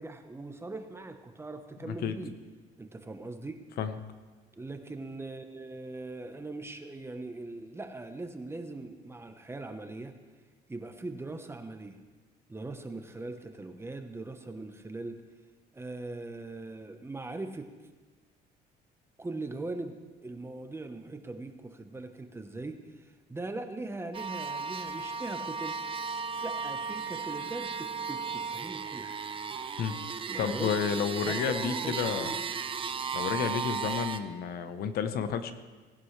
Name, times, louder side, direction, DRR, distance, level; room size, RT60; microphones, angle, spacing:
voice 1, 0.0-2.3 2.8-3.5 4.5-10.1 10.7-12.0 12.5-15.2 15.7-17.7 19.2-20.0 20.2-25.8 26.4-29.2 30.3-30.7 31.2-32.3, right 2 dB, 15° right, 6 dB, 1.0 m, -40 dB
voice 2, 1.8-2.2 3.8-4.0 29.8-29.9 30.4-32.3 33.1-35.5, left 7 dB, 65° left, 10 dB, 0.9 m, -31 dB
sound 1, 24.1-34.2, right 5 dB, 30° right, 0.7 m, -35 dB
18.5 x 11.0 x 3.3 m, 1.3 s
cardioid pair, 110°, 17 cm